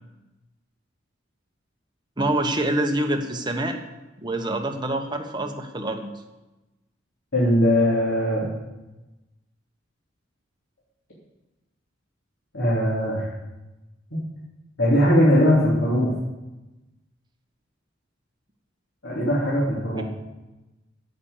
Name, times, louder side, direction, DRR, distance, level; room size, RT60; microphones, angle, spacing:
voice 1, 2.2-3.8 4.2-6.1 20.0-20.1, right 1 dB, 25° right, 4 dB, 1.2 m, -26 dB
voice 2, 7.3-8.5 12.5-13.3 14.1-14.2 14.8-16.1 19.0-20.0, equal, 75° left, -7 dB, 3.3 m, -20 dB
10.5 x 8.5 x 7.4 m, 1.1 s
head